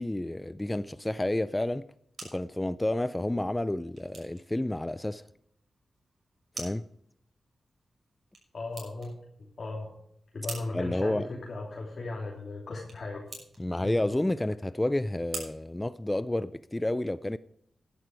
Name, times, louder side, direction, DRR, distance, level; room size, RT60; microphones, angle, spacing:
voice 1, 0.0-1.9 2.2-5.2 6.6-6.8 10.7-11.3 13.6-17.4, left 1 dB, 15° left, 0.4 m, -30 dB
sound 1, 1.8-16.7, right 3 dB, 60° right, 6.2 m, -49 dB
voice 2, 8.5-9.1 9.6-9.9 10.3-13.2 13.8-14.0, left 2 dB, 55° left, 3.0 m, -36 dB
12.0 x 11.0 x 4.7 m
cardioid pair, 55°, 0 cm